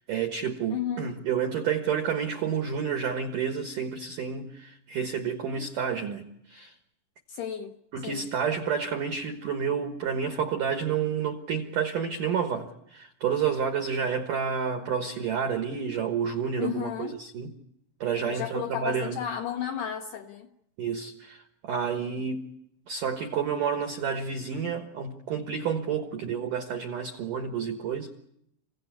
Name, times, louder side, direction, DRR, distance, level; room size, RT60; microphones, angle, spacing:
voice 1, 0.0-6.7 7.9-17.5 18.0-19.1 20.8-22.4 22.9-28.1, right 7 dB, 80° right, 5 dB, 1.9 m, -30 dB
voice 2, 0.7-1.1 5.6-5.7 7.3-7.8 8.0-8.3 16.6-17.2 18.3-20.5, left 9 dB, 75° left, 3 dB, 2.4 m, -33 dB
28.0 x 16.5 x 8.5 m, 0.78 s
omnidirectional pair, 5.9 m